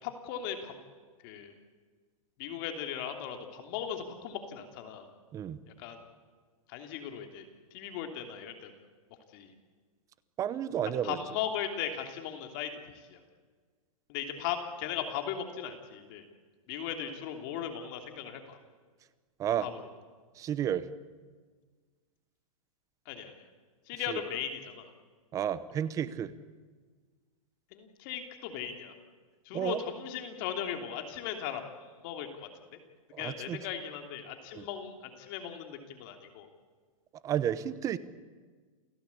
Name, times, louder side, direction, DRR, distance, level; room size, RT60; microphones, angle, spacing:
voice 1, 0.0-0.8 1.2-1.5 2.4-5.1 5.8-6.0 6.7-7.4 7.7-8.7 9.3-9.5 11.0-13.2 14.1-16.2 16.7-18.6 19.6-19.8 23.1-23.3 23.9-24.9 27.7-28.9 29.4-31.6 32.0-32.5 33.2-36.5, left 8 dB, 40° left, 6 dB, 2.9 m, -37 dB
voice 2, 10.4-11.2 19.4-19.7 20.3-20.9 24.1-24.2 25.3-26.3 29.5-29.8 33.1-33.6 34.5-34.6 37.2-38.0, right 10 dB, 20° right, 16 dB, 1.0 m, -31 dB
28.5 x 17.0 x 8.4 m, 1.5 s
hypercardioid pair, 155°, 18 cm